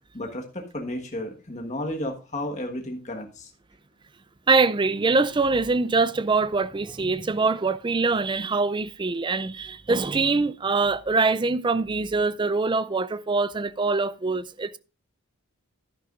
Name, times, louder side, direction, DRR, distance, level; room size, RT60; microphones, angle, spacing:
voice 1, 0.1-3.5, left 1 dB, 30° left, 1.5 m, -33 dB
voice 2, 4.5-14.8, right 3 dB, 20° right, 0.4 m, -24 dB
11.0 x 11.0 x 2.5 m
head